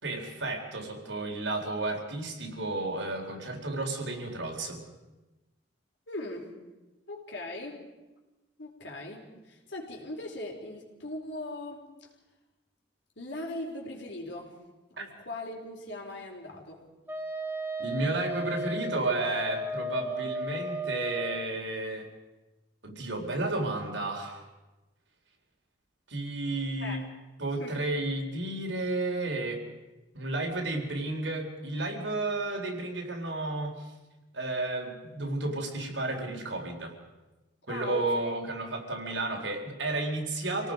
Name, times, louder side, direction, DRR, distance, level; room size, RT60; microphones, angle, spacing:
voice 1, 0.0-4.8 17.8-22.1 22.8-24.4 26.1-27.0 27.4-29.6 30.1-33.8 34.3-37.0 37.7-40.7, right 2 dB, 80° right, 1 dB, 4.1 m, -32 dB
voice 2, 6.1-6.5 7.1-7.9 8.6-12.1 13.2-14.6 14.9-16.9 26.8-27.1 27.6-27.9 37.7-38.8, left 2 dB, 70° left, 0 dB, 4.3 m, -40 dB
Wind instrument woodwind instrument, 17.1-21.5, right 1 dB, 10° right, 2.4 m, -34 dB
27.5 x 18.0 x 5.2 m, 1.1 s
head